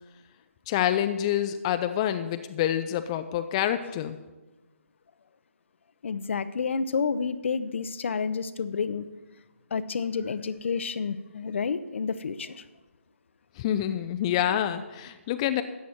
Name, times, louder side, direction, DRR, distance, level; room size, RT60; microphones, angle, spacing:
voice 1, 0.7-4.2 13.6-15.6, left 11 dB, 25° left, 9 dB, 0.5 m, -27 dB
voice 2, 6.0-9.1 9.7-12.6, left 5 dB, 60° left, 14 dB, 0.7 m, -30 dB
14.0 x 9.3 x 4.4 m, 1.2 s
figure-of-eight pair, 150°, 7 cm